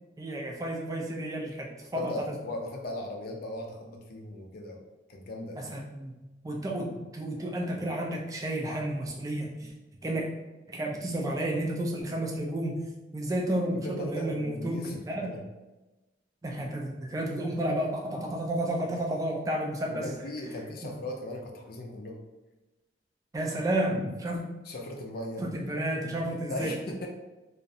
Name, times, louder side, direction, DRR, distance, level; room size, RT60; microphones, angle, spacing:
voice 1, 0.2-2.1 5.6-6.2 6.4-9.7 10.0-10.3 10.7-12.8 13.1-14.8 15.1-15.3 16.4-20.1 23.3-24.4 25.4-26.7, right 1 dB, 20° right, 0 dB, 0.3 m, -31 dB
voice 2, 1.9-4.8 5.1-5.7 13.7-15.4 19.9-22.2 24.7-25.5 26.5-27.1, left 1 dB, 50° left, 1 dB, 0.4 m, -38 dB
2.4 x 2.0 x 2.6 m, 1.1 s
head